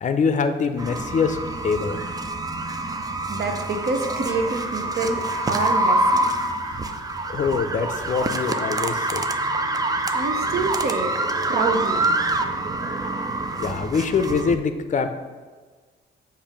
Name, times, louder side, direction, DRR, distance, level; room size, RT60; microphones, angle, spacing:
voice 1, 0.0-1.4 1.6-2.0 7.3-9.3 13.6-15.1, left 5 dB, 40° left, 9 dB, 0.5 m, -24 dB
sound 1, 0.8-14.6, right 2 dB, 20° right, 0.4 m, -26 dB
voice 2, 3.3-6.3 10.1-11.2 11.5-12.1, right 3 dB, 55° right, 4 dB, 0.8 m, -27 dB
7.0 x 2.7 x 5.2 m, 1.4 s
cardioid pair, 90°, 20 cm